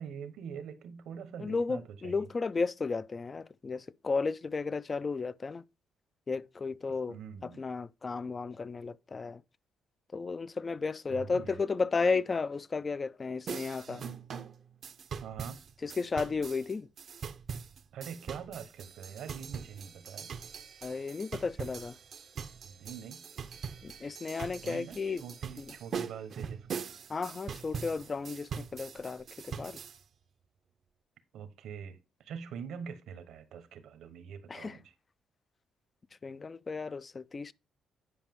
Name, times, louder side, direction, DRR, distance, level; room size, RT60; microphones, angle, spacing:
voice 1, 0.0-2.3 6.9-7.6 11.1-11.6 15.2-15.6 17.9-20.4 22.6-23.2 24.6-26.7 31.3-34.9 36.8-36.9, right 7 dB, 80° right, 1.1 m, -44 dB
voice 2, 1.4-5.6 6.3-7.2 7.4-9.4 10.1-14.0 15.8-16.9 20.8-22.0 23.8-25.2 25.6-25.7 27.1-29.8 34.5-34.8 36.2-37.5, left 4 dB, 35° left, 0.4 m, -33 dB
sound 1, 13.5-30.0, right 6 dB, 55° right, 0.6 m, -42 dB
9.8 x 5.2 x 3.6 m
cardioid pair, 90°, 0 cm